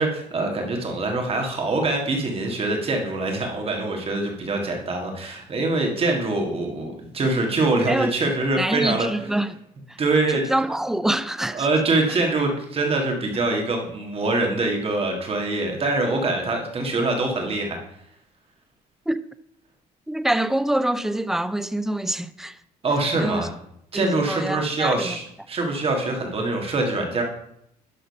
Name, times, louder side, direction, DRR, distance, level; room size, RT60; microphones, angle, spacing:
voice 1, 0.0-9.1 10.0-10.4 11.5-17.8 22.8-23.5 23.9-27.2, right 2 dB, 35° right, 1.9 m, -24 dB
voice 2, 8.6-9.6 9.9-10.0 10.3-11.7 12.1-12.2 19.1-19.2 20.1-22.6 23.2-23.5 23.9-25.2, right 1 dB, ahead, 0.4 m, -25 dB
11.5 x 3.9 x 5.4 m
cardioid pair, 110°, 17 cm